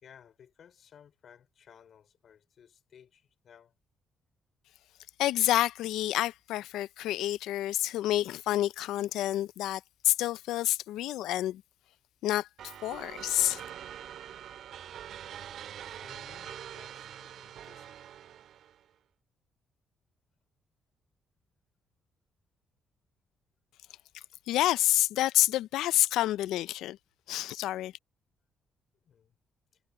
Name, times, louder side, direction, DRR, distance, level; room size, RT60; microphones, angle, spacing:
voice 1, 0.0-3.7 15.9-18.0 28.9-29.4 29.7-29.8, left 8 dB, 60° left, 4.2 m, -58 dB
voice 2, 5.2-11.6 12.2-12.5 12.8-13.6 24.1-27.0 27.3-27.9, left 14 dB, 90° left, 0.4 m, -28 dB
sound 1, 12.6-18.8, right 10 dB, 70° right, 2.2 m, -44 dB
cardioid pair, 90°, 0 cm